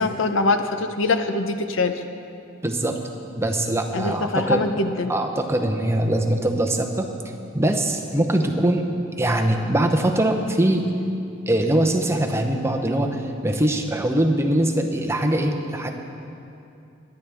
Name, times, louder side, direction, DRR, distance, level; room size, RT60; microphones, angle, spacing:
voice 1, 0.0-1.9 3.9-5.1, left 3 dB, 80° left, 7 dB, 0.8 m, -23 dB
voice 2, 2.6-3.0 3.4-4.6 5.1-7.1 7.5-8.8 9.2-10.8 11.5-15.9, right 1 dB, 15° right, 3 dB, 0.7 m, -22 dB
22.0 x 10.0 x 3.5 m, 2.7 s
head